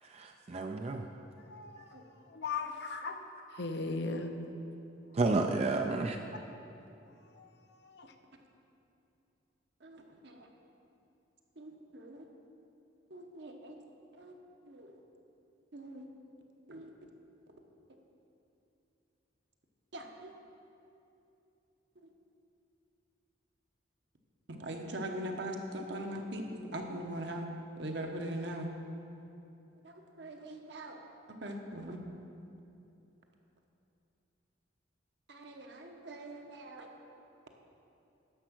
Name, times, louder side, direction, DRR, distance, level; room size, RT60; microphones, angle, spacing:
voice 1, 0.0-1.1 3.0-3.2 3.5-3.7 5.1-6.2, right 3 dB, 35° right, 4 dB, 0.4 m, -31 dB
voice 2, 1.5-1.8 2.3-3.2 3.6-4.3 8.0-8.1, left 4 dB, 60° left, 6 dB, 0.7 m, -37 dB
voice 3, 9.8-10.5 11.6-12.3 13.1-13.8 14.2-14.3 14.6-15.0 15.7-16.1 16.7-16.9 19.9-20.3 24.5-27.5 27.8-28.7 29.8-31.0 31.4-32.0 35.3-36.9, right 1 dB, 60° right, 3 dB, 1.0 m, -41 dB
10.0 x 6.7 x 6.1 m, 2.8 s
head